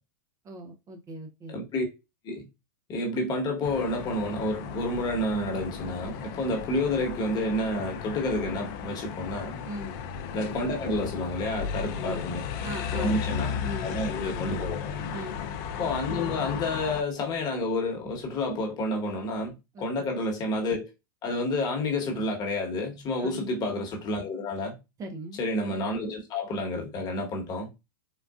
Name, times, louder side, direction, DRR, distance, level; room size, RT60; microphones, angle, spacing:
voice 1, 0.4-1.6 9.7-10.0 11.9-12.3 12.6-13.2 13.6-13.9 15.1-15.4 19.7-20.1 23.2-23.5 25.0-25.4, right 1 dB, 25° right, 0.6 m, -39 dB
voice 2, 1.5-1.9 2.2-2.4 2.9-9.6 10.3-12.4 12.9-13.5 13.8-14.9 15.8-20.9 21.2-24.8 25.4-27.7, left 1 dB, 35° left, 1.2 m, -30 dB
sound 1, 3.6-17.0, left 7 dB, 50° left, 0.5 m, -35 dB
3.9 x 2.3 x 2.3 m
hypercardioid pair, 120°, 12 cm